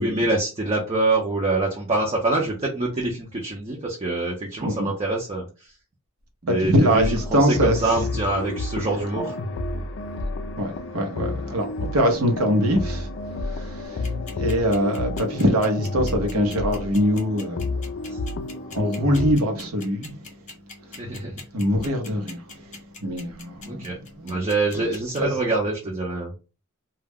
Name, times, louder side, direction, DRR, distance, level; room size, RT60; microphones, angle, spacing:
voice 1, 0.0-5.5 6.4-9.4 18.1-18.2 21.0-21.3 23.7-24.0 24.2-26.3, right 2 dB, 30° right, 0.6 m, -25 dB
voice 2, 4.6-4.9 6.5-7.8 10.6-13.1 13.4-17.7 18.7-20.1 20.9-21.0 21.5-24.4 24.7-24.8 25.2-25.3, equal, 90° right, 0.8 m, -23 dB
sound 1, 6.9-19.3, left 2 dB, 60° left, 0.3 m, -30 dB
sound 2, 13.8-25.2, left 4 dB, 35° left, 0.8 m, -41 dB
2.3 x 2.1 x 3.4 m
head